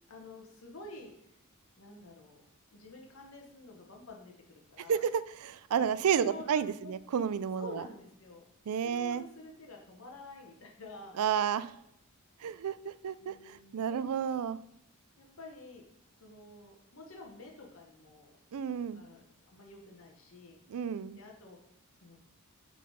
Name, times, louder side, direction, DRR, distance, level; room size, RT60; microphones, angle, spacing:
voice 1, 0.1-1.1 1.7-2.4 2.7-5.0 5.7-5.9 6.2-6.9 7.6-8.4 8.8-11.2 13.2-14.0 15.2-15.8 16.2-18.3 18.6-20.6 21.2-21.6 22.0-22.2, left 2 dB, 65° left, 1 dB, 1.1 m, -50 dB
voice 2, 4.9-7.8 8.7-9.2 11.2-11.7 12.4-14.6 18.5-19.0 20.7-21.2, right 7 dB, 80° right, 16 dB, 0.4 m, -31 dB
6.4 x 3.9 x 5.4 m, 0.78 s
head